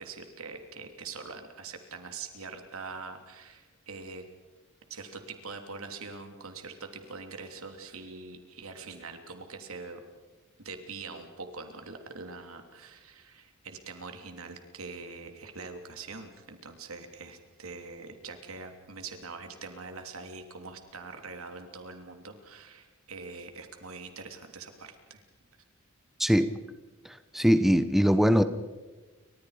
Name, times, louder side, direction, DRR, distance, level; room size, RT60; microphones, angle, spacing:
voice 1, 0.0-4.2 4.9-10.0 10.6-25.2, right 4 dB, 90° right, 6 dB, 3.1 m, -43 dB
voice 2, 26.2-26.5 27.0-28.4, equal, ahead, 10 dB, 0.9 m, -22 dB
29.5 x 25.5 x 5.1 m, 1.2 s
head